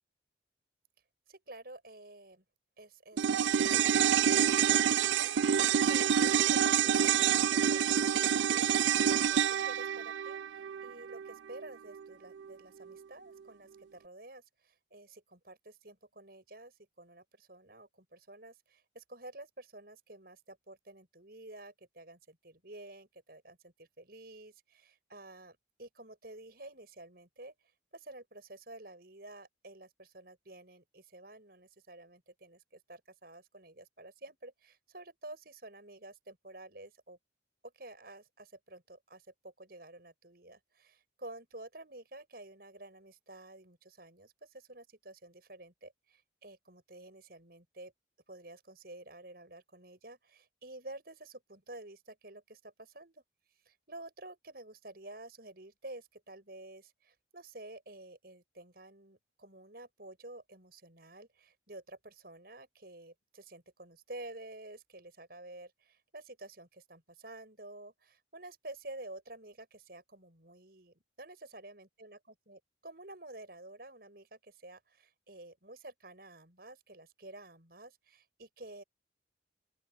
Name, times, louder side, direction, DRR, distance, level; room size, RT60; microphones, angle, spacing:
voice 1, 1.3-2.4 2.8-5.6 5.9-27.5 27.9-37.2 37.6-47.9 48.3-53.2 53.6-72.2 72.5-78.8, right 2 dB, 55° right, 7.7 m, -51 dB
sound 1, 3.2-11.7 11.9-12.0, right 9 dB, 75° right, 0.4 m, -27 dB
open air
head